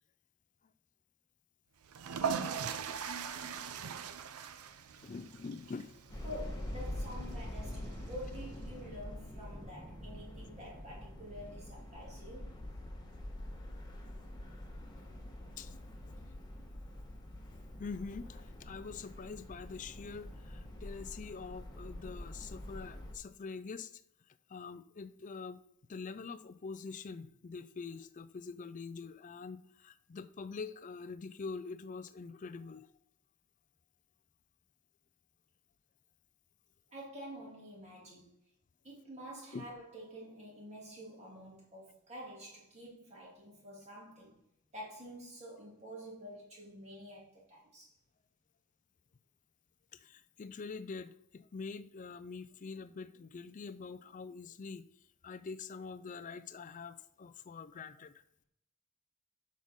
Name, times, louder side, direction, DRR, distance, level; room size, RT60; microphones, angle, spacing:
sound 1, 1.9-8.7, right 6 dB, 85° right, 0.5 m, -41 dB
voice 1, 3.2-3.6 5.0-6.1 15.6-15.7 17.5-24.0 24.5-25.6 25.9-32.9 39.5-39.7 49.9-54.9 55.2-58.1, left 4 dB, 35° left, 0.4 m, -45 dB
sound 2, 6.1-23.1, left 1 dB, 20° left, 1.3 m, -45 dB
voice 2, 6.2-12.6 36.9-38.3 38.8-44.4 44.7-47.9, equal, 30° right, 2.6 m, -48 dB
8.2 x 6.3 x 3.7 m
head